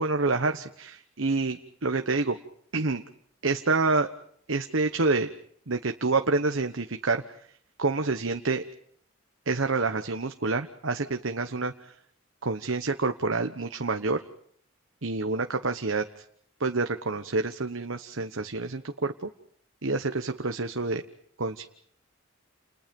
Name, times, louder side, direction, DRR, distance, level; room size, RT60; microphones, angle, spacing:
voice 1, 0.0-2.4 2.7-3.0 3.4-4.1 4.5-5.3 5.7-7.2 7.8-8.6 9.5-11.7 12.4-14.2 15.0-16.0 16.6-19.3 19.8-21.0 21.4-21.7, right 3 dB, 70° right, 6 dB, 1.2 m, -27 dB
30.0 x 29.5 x 5.4 m, 0.65 s
head